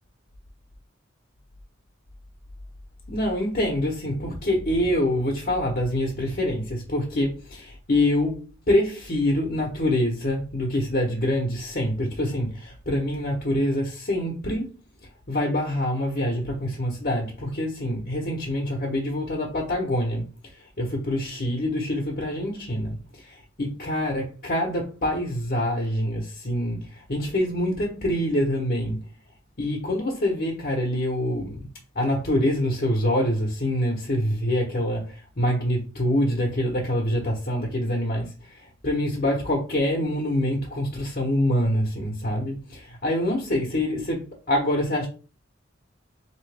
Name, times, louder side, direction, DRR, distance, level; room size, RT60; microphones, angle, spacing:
voice 1, 3.1-8.4 8.7-14.7 15.3-20.3 20.5-29.0 29.6-31.7 31.9-45.1, left 1 dB, 45° left, 1.1 m, -25 dB
3.9 x 3.0 x 3.4 m
head